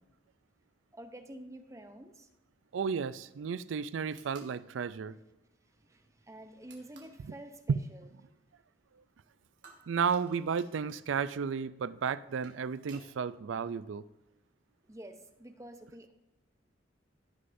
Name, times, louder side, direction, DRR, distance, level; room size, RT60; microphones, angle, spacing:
voice 1, 0.9-2.3 5.7-8.1 14.9-16.1, right 1 dB, 15° right, 0.7 m, -49 dB
voice 2, 2.7-5.2 7.2-7.3 7.7-7.8 9.9-14.0, right 6 dB, 85° right, 0.4 m, -33 dB
sound 1, 4.1-4.5 6.7-7.2 9.6-11.0 12.1-13.1, right 4 dB, 65° right, 2.1 m, -57 dB
16.5 x 6.6 x 2.6 m
head